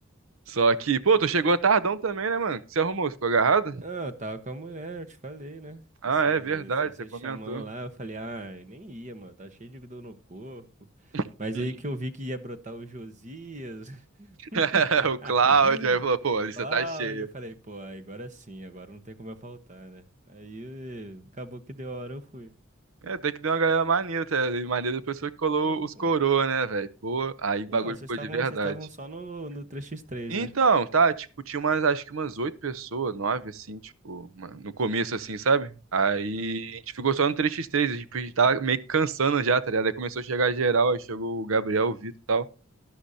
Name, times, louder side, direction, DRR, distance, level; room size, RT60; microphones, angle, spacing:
voice 1, 0.5-3.8 6.0-7.6 11.1-11.2 11.5-11.7 14.5-17.3 23.0-28.7 30.3-33.8 34.0-42.5, right 5 dB, 80° right, 0.8 m, -25 dB
voice 2, 3.8-5.8 6.3-10.7 11.1-22.5 25.5-26.1 27.7-30.5 36.4-36.6, right 1 dB, 35° right, 1.1 m, -39 dB
11.5 x 11.5 x 2.8 m
head